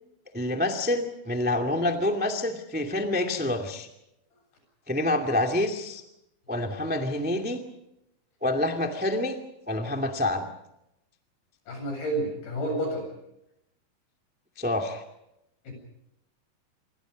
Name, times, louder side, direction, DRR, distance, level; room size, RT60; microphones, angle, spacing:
voice 1, 0.3-3.9 4.9-6.0 6.5-7.6 8.4-9.4 9.7-10.4 14.6-15.0, left 1 dB, 5° right, 4 dB, 0.8 m, -27 dB
voice 2, 11.7-13.1 15.6-15.7, right 1 dB, 65° left, 3 dB, 9.5 m, -30 dB
28.0 x 24.0 x 5.3 m, 0.84 s
omnidirectional pair, 4.7 m